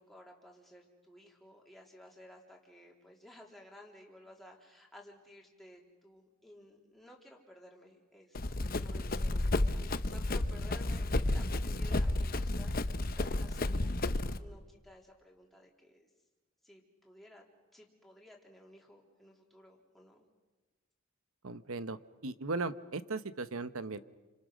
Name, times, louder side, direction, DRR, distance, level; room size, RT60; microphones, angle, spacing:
voice 1, 0.0-13.9 14.3-16.1 16.6-17.4 17.7-20.3, left 1 dB, ahead, -1 dB, 3.7 m, -56 dB
Run, 8.3-14.4, left 2 dB, 40° left, 0.9 m, -32 dB
voice 2, 21.4-22.0 22.2-24.0, right 3 dB, 75° right, 13 dB, 1.1 m, -37 dB
29.0 x 26.0 x 6.4 m, 1.2 s
head